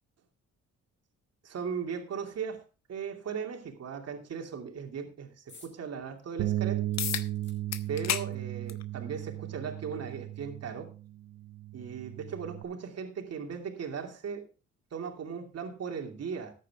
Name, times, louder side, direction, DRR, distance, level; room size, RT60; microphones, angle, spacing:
voice 1, 1.4-2.6 2.9-6.8 7.9-10.9 11.7-14.4 14.9-16.5, right 6 dB, 55° right, 4 dB, 2.7 m, -37 dB
sound 1, 5.5-5.8 6.2-6.3 6.9-8.6 9.5-9.6 9.8-9.9, left 3 dB, 40° left, 5.0 m, -57 dB
Bass guitar, 6.4-12.6, right 14 dB, 75° right, 0.9 m, -35 dB
sound 2, 7.0-7.3 7.7-8.3 8.7-8.8 9.9-10.0 14.9-15.0, left 10 dB, 60° left, 1.0 m, -32 dB
13.5 x 9.2 x 3.6 m, 0.33 s
cardioid pair, 90°, 30 cm